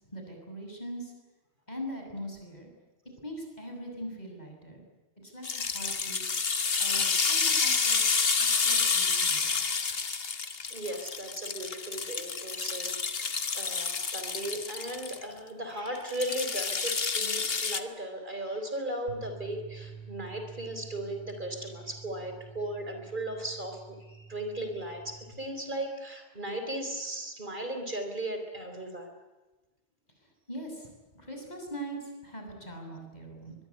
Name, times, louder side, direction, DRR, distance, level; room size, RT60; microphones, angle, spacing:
voice 1, 0.1-1.1 1.7-2.7 3.2-4.8 5.2-6.4 6.8-8.2 8.5-9.8 30.5-30.9 31.1-33.6, equal, 40° left, 2 dB, 7.3 m, -41 dB
sound 1, 5.4-15.2 16.1-17.8, left 5 dB, 65° left, 1.6 m, -29 dB
voice 2, 10.7-13.0 13.5-23.8 24.1-29.1, right 1 dB, 50° right, 6 dB, 4.2 m, -36 dB
sound 2, 19.1-25.3, right 5 dB, 80° right, 5.6 m, -48 dB
23.5 x 21.5 x 9.8 m, 1.2 s
omnidirectional pair, 1.1 m